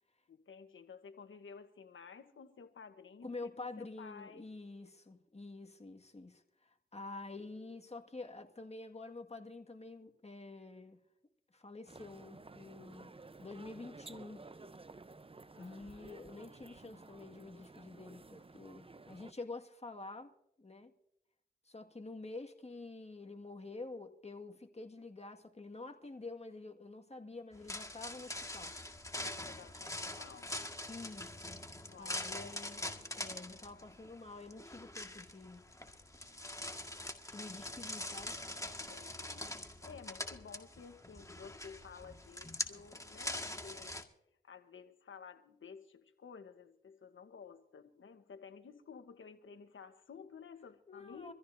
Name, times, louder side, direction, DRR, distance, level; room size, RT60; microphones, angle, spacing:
voice 1, 0.3-4.5 15.5-16.5 29.2-30.5 31.8-32.6 33.0-33.1 38.8-44.0 44.4-51.3, left 6 dB, 75° left, 1.1 m, -53 dB
voice 2, 3.2-11.0 11.5-14.5 15.6-20.3 20.6-20.9 21.7-28.7 30.9-31.7 32.0-32.8 33.2-35.7 37.3-38.4 50.9-51.3, left 3 dB, 30° left, 1.8 m, -48 dB
sound 1, 11.9-19.3, right 3 dB, 25° right, 0.7 m, -54 dB
sound 2, 27.5-44.0, left 1 dB, 15° left, 1.7 m, -44 dB
24.5 x 14.5 x 2.7 m
cardioid pair, 40°, 20 cm